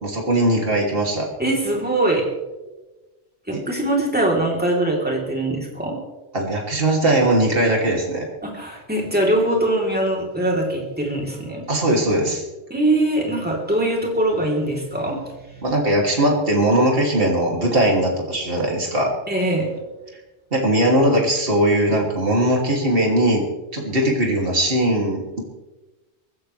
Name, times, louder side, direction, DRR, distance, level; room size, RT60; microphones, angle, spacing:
voice 1, 0.0-1.3 3.5-3.6 6.3-8.3 11.7-12.4 15.6-19.1 20.5-23.5 23.7-25.4, right 1 dB, 55° right, -1 dB, 3.1 m, -19 dB
voice 2, 1.4-2.3 3.5-6.0 8.4-11.7 12.7-15.6 19.3-19.7, right 1 dB, 10° right, -1 dB, 3.5 m, -22 dB
23.0 x 16.0 x 3.4 m, 1.1 s
omnidirectional pair, 1.2 m